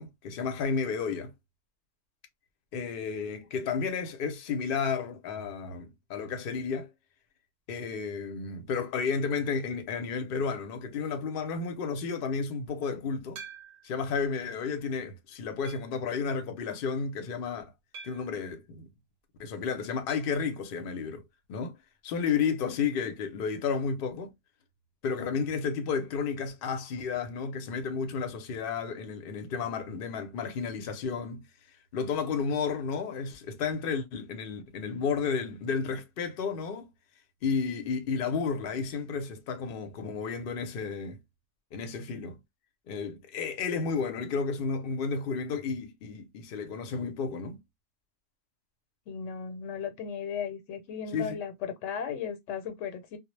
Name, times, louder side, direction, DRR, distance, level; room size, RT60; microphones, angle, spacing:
voice 1, 0.0-1.3 2.7-6.9 7.7-13.4 13.8-17.7 18.0-18.9 19.4-21.2 21.5-21.7 22.0-24.3 25.0-31.4 31.9-36.9 37.4-41.2 41.7-42.4 42.9-47.6 51.1-51.4, left 5 dB, 60° left, 0.7 m, -32 dB
sound 1, 13.4-14.0 14.7-14.8 15.6-16.0 17.9-18.4 20.1-20.4 20.6-20.7 21.0-21.1 23.1-23.2, right 5 dB, 90° right, 0.9 m, -47 dB
voice 2, 49.1-53.2, left 7 dB, 90° left, 1.0 m, -36 dB
2.0 x 2.0 x 3.0 m
omnidirectional pair, 1.2 m